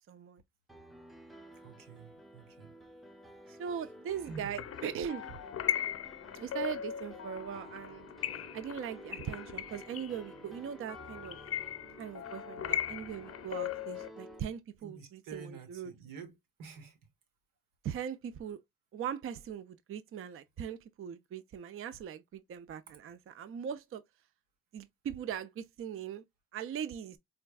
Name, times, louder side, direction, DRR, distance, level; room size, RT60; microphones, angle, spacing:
voice 1, 0.1-0.4 3.6-5.4 6.3-8.0 8.5-11.4 12.0-15.9 17.8-18.6 18.9-24.0 24.7-26.2 26.5-27.2, right 8 dB, 40° right, 0.4 m, -40 dB
Piano, 0.7-14.4, right 1 dB, ahead, 0.7 m, -53 dB
voice 2, 1.6-2.7 3.4-3.6 4.2-4.5 14.8-16.3 16.6-17.0, right 5 dB, 85° right, 1.3 m, -48 dB
sound 1, 4.3-14.1, left 10 dB, 45° left, 0.6 m, -39 dB
4.4 x 2.3 x 2.2 m
cardioid pair, 70°, 32 cm